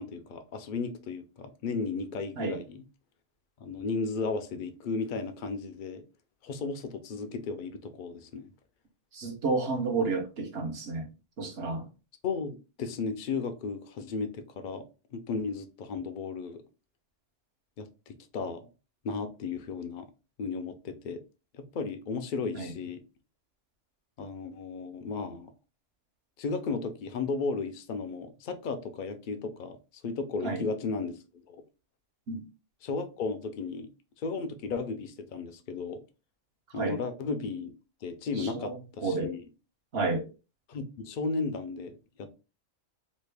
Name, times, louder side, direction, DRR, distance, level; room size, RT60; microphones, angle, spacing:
voice 1, 0.0-2.9 3.6-6.0 6.4-8.5 12.2-14.8 15.1-16.6 17.8-18.7 19.0-20.1 20.4-21.2 21.5-23.0 24.2-25.5 26.4-29.8 30.0-31.2 31.5-31.6 32.8-33.9 34.2-36.0 36.7-37.7 38.0-39.4 40.7-42.3, left 4 dB, 60° left, 0.5 m, -34 dB
voice 2, 9.1-11.1 11.4-11.9 22.5-22.7 30.4-30.6 32.3-32.4 36.8-37.0 38.4-38.7 39.0-39.3 39.9-40.2, right 3 dB, 55° right, 1.0 m, -30 dB
3.1 x 2.4 x 3.3 m
omnidirectional pair, 1.3 m